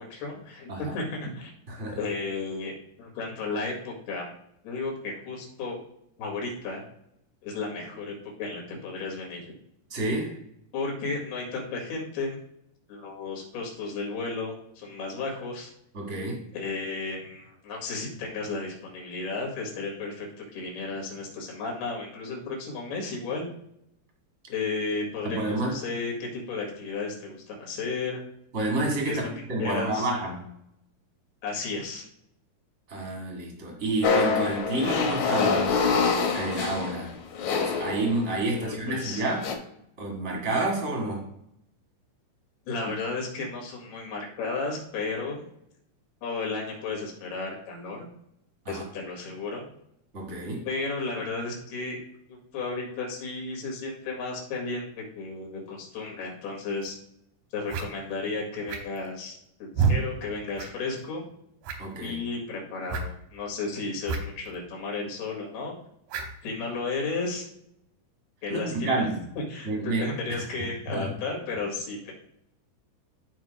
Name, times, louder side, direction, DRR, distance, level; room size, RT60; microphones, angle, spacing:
voice 1, 0.0-1.5 1.9-2.7 3.0-4.3 4.6-5.8 6.2-6.8 7.4-9.4 10.7-12.4 12.9-15.7 16.5-20.3 20.5-23.5 24.5-28.2 29.1-29.3 29.6-30.1 31.4-32.1 38.5-39.2 42.7-45.5 46.2-48.1 48.7-49.7 50.7-52.0 52.3-57.0 57.5-61.3 62.0-65.7 66.4-67.5 68.4-69.1 69.5-72.1, left 3 dB, 90° left, -2 dB, 3.9 m, -33 dB
voice 2, 1.7-2.0 9.9-10.3 15.9-16.4 25.2-25.8 28.5-29.2 29.5-30.4 32.9-37.1 37.6-39.5 40.0-41.2 48.6-48.8 50.1-50.6 61.8-62.2 68.5-69.2 69.6-70.0 70.9-71.1, right 2 dB, 50° right, -1 dB, 0.8 m, -29 dB
sound 1, 34.0-38.5 39.2-39.6, left 5 dB, 70° left, 1.8 m, -26 dB
sound 2, 56.8-56.9 57.7-57.9 58.7-59.1 59.7-60.0 60.6-60.7 61.0-61.1 61.6-62.0 62.9-63.1 64.0-64.2 64.5-64.6 66.1-66.3, right 5 dB, 70° right, 2.5 m, -27 dB
14.5 x 5.0 x 2.2 m, 0.76 s
omnidirectional pair, 4.5 m